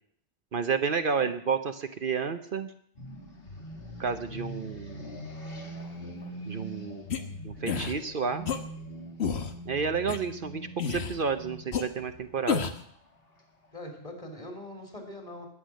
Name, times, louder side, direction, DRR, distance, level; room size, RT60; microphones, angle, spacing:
voice 1, 0.5-2.7 4.0-5.0 6.4-7.0 7.4-8.5 9.6-12.7, right 5 dB, 60° right, 8 dB, 1.0 m, -30 dB
sound 1, 3.0-13.7, equal, 60° left, 2.3 m, -43 dB
sound 2, 7.1-7.2 7.7-7.9 8.5-8.6 9.2-9.5 10.1-10.2 10.8-11.2 11.7-11.8 12.5-12.8, left 6 dB, 85° left, 1.4 m, -29 dB
voice 2, 13.7-15.5, left 1 dB, 35° left, 2 dB, 3.7 m, -42 dB
21.0 x 8.7 x 6.4 m, 0.64 s
omnidirectional pair, 1.1 m